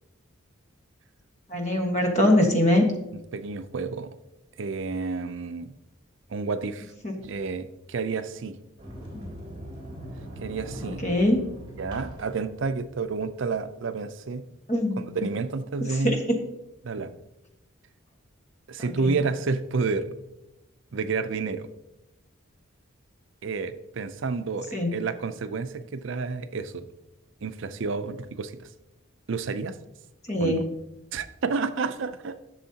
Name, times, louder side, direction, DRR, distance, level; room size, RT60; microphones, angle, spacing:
voice 1, 1.5-2.9 7.0-7.1 9.1-9.3 10.8-11.4 14.7-15.1 15.9-16.2 19.0-19.2 24.7-25.0 30.3-30.7, left 1 dB, 35° left, 2 dB, 1.4 m, -23 dB
voice 2, 3.3-4.2 4.6-5.7 6.3-6.9 7.2-8.6 10.4-11.1 11.8-14.4 15.0-16.2 16.8-17.1 18.7-20.1 20.9-21.7 23.4-26.9 27.4-28.7 29.3-29.8 30.4-30.6 31.1-32.4, right 4 dB, 60° right, 10 dB, 0.5 m, -30 dB
Sliding door, 8.8-13.6, equal, 25° right, 2.8 m, -41 dB
11.5 x 7.0 x 2.8 m, 0.90 s
head